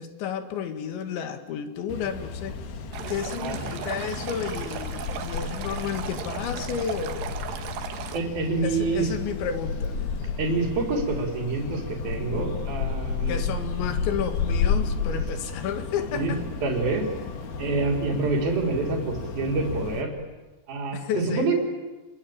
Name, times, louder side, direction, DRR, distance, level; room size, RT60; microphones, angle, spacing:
voice 1, 0.0-2.5 3.1-7.4 8.6-10.0 13.3-16.4 20.9-21.5, left 7 dB, 85° left, 7 dB, 4.3 m, -31 dB
sound 1, 1.9-20.0, left 5 dB, 60° left, 3.9 m, -32 dB
Stream, 2.9-8.2, right 9 dB, 75° right, 3.6 m, -37 dB
voice 2, 3.4-3.8 8.1-9.1 10.4-13.4 16.1-16.3 16.6-17.1 17.6-20.1 20.7-21.5, right 3 dB, 60° right, 2 dB, 4.9 m, -27 dB
29.5 x 22.5 x 8.8 m, 1.2 s
omnidirectional pair, 5.1 m